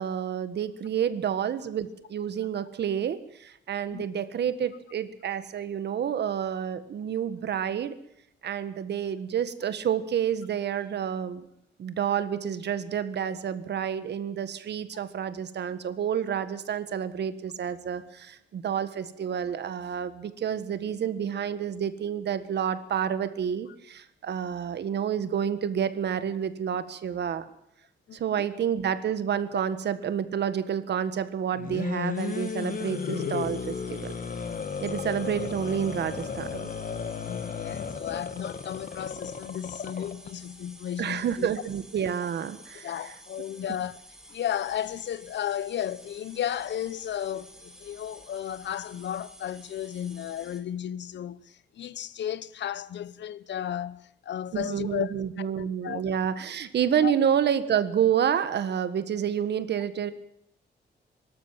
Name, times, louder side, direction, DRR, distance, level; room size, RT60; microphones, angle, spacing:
voice 1, 0.0-8.0 8.4-11.4 11.8-27.4 28.1-34.1 34.8-36.7 41.0-43.1 54.5-60.1, right 8 dB, 70° right, 1.6 m, -29 dB
voice 2, 28.1-28.5 37.3-41.5 42.8-44.0 44.3-56.0 57.0-57.1, left 10 dB, 80° left, 0.9 m, -34 dB
sound 1, 31.5-40.3, left 6 dB, 50° left, 1.5 m, -34 dB
sound 2, 32.1-50.6, right 1 dB, 5° right, 2.8 m, -51 dB
24.0 x 13.0 x 9.2 m
wide cardioid pair, 160°, 18 cm